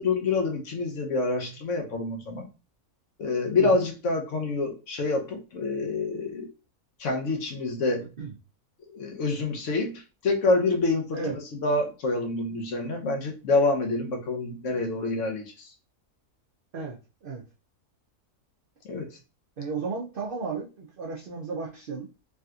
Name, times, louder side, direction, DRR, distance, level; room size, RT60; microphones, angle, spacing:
voice 1, 0.0-2.5 3.2-6.5 7.0-8.1 8.9-11.2 11.6-15.7 18.9-19.1, left 3 dB, 65° left, 0.9 m, -27 dB
voice 2, 16.7-17.4 19.6-22.1, right 4 dB, 65° right, 0.5 m, -34 dB
3.3 x 2.7 x 2.3 m
omnidirectional pair, 1.5 m